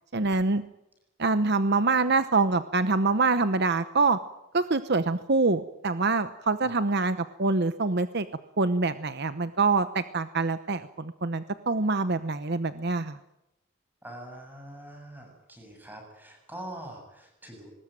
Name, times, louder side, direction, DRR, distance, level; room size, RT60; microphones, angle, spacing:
voice 1, 0.1-0.6 1.2-4.2 4.5-8.3 8.6-13.2, right 3 dB, 50° right, 11 dB, 0.9 m, -25 dB
voice 2, 14.0-17.7, right 1 dB, 10° right, 3 dB, 7.7 m, -44 dB
24.0 x 20.0 x 9.2 m, 0.88 s
head